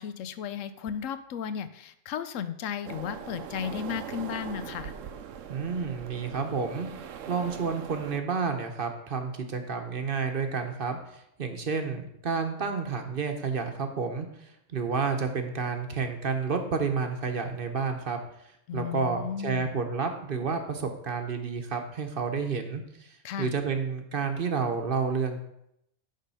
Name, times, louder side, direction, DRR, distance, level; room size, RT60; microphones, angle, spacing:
voice 1, 0.0-4.9 18.7-19.7 23.2-23.5, left 8 dB, 85° left, 12 dB, 1.0 m, -34 dB
sound 1, 2.8-8.2, right 8 dB, 85° right, 1.0 m, -41 dB
voice 2, 5.5-6.9 7.3-18.2 18.7-25.4, right 5 dB, 50° right, 5 dB, 0.9 m, -30 dB
10.0 x 3.7 x 5.5 m, 0.78 s
omnidirectional pair, 1.3 m